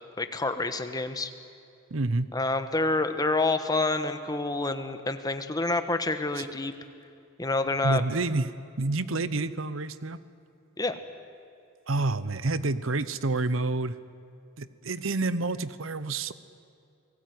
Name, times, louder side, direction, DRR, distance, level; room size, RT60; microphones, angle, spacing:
voice 1, 0.2-1.3 2.3-6.7 7.4-8.0 10.8-11.0, left 2 dB, 20° left, 9 dB, 1.3 m, -28 dB
voice 2, 1.9-2.3 6.4-6.5 7.8-10.2 11.9-13.9 14.6-16.3, right 2 dB, 70° right, 15 dB, 1.0 m, -28 dB
29.0 x 19.0 x 9.5 m, 2.6 s
head